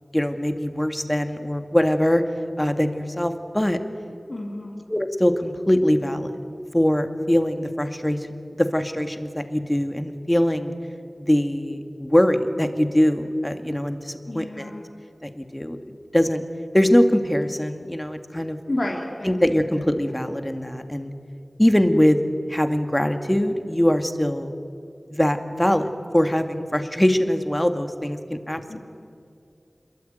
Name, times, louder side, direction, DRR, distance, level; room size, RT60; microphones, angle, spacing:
voice 1, 0.1-2.2 2.6-3.8 4.9-6.3 6.7-8.2 8.5-10.7 11.2-14.7 15.2-15.8 16.1-16.4 16.7-18.6 19.2-21.1 21.6-22.2 22.5-24.5 25.1-28.8, equal, 15° left, 7 dB, 2.2 m, -22 dB
voice 2, 4.3-4.8 14.3-14.8 18.7-19.4 19.7-19.8 28.7-28.8, left 1 dB, 50° left, 0 dB, 3.0 m, -30 dB
27.0 x 22.5 x 9.1 m, 2.5 s
wide cardioid pair, 60°, 0 cm